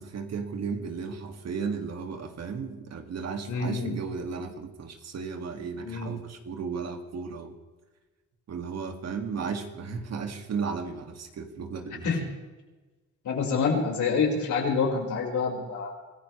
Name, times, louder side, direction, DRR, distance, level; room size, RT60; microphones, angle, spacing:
voice 1, 0.0-7.5 8.5-12.1, right 5 dB, 60° right, 5 dB, 2.3 m, -35 dB
voice 2, 3.5-4.0 5.8-6.1 12.0-12.2 13.2-15.9, left 5 dB, 75° left, -1 dB, 5.2 m, -27 dB
25.5 x 15.0 x 3.3 m, 1.2 s
cardioid pair, 90°, 30 cm